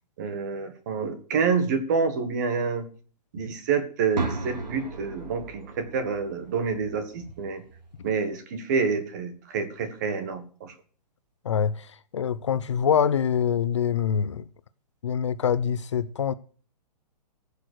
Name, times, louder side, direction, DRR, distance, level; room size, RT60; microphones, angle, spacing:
voice 1, 0.2-2.9 3.3-7.6 8.0-10.7, right 5 dB, 25° right, 1.5 m, -28 dB
sound 1, 4.2-8.1, right 3 dB, 80° right, 3.1 m, -36 dB
voice 2, 11.4-14.4 15.0-16.3, left 8 dB, 45° left, 0.7 m, -25 dB
15.0 x 6.9 x 6.3 m
hypercardioid pair, 175°, 21 cm